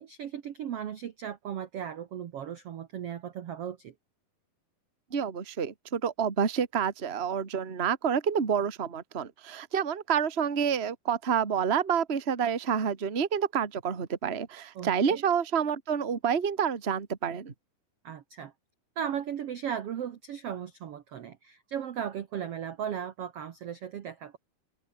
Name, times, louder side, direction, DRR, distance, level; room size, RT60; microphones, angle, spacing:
voice 1, 0.0-3.9 14.7-15.2 18.0-18.5 19.0-24.4, right 9 dB, 65° right, 1.5 m, -36 dB
voice 2, 5.1-17.5, right 7 dB, 25° right, 1.3 m, -28 dB
open air
omnidirectional pair, 4.4 m